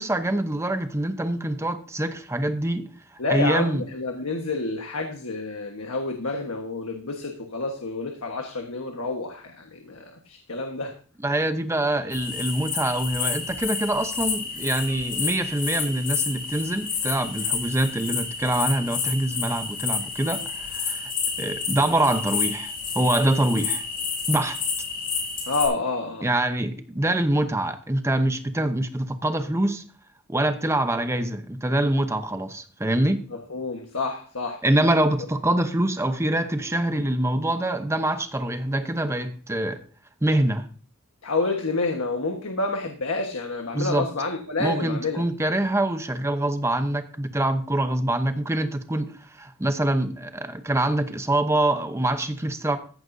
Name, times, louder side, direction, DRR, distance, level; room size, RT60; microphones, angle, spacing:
voice 1, 0.0-2.9 3.3-3.8 11.2-21.1 21.4-23.8 24.3-24.6 26.2-29.8 30.3-33.2 34.6-39.8 40.2-40.6 43.7-44.1 44.6-52.8, right 1 dB, 10° right, 0.8 m, -25 dB
voice 2, 3.2-10.9 25.5-26.3 33.5-34.6 41.2-45.2, left 3 dB, 75° left, 1.4 m, -29 dB
sound 1, 12.1-25.7, left 5 dB, 40° left, 4.8 m, -30 dB
14.5 x 10.0 x 2.7 m
head